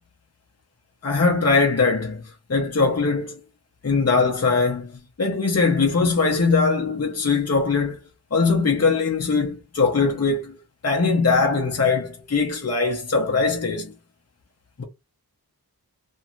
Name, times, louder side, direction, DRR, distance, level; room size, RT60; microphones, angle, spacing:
voice 1, 1.0-2.2 2.5-3.4 3.8-4.9 5.2-8.0 8.3-10.6 10.8-13.9 14.8-14.9, left 4 dB, 40° left, 0.8 m, -21 dB
2.6 x 2.4 x 2.9 m
wide cardioid pair, 60°, 38 cm